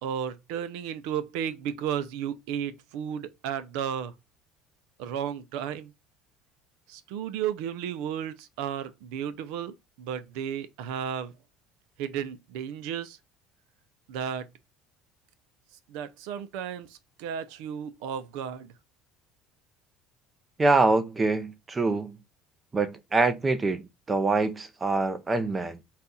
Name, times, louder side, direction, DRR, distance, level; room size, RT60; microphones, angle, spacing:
voice 1, 0.0-4.1 5.0-5.9 6.9-11.3 12.0-13.2 14.1-14.5 15.9-18.7, right 9 dB, 80° right, 0.5 m, -33 dB
voice 2, 20.6-22.2 22.7-25.8, right 3 dB, 20° right, 0.5 m, -25 dB
4.1 x 2.4 x 3.8 m
cardioid pair, 115°, 0 cm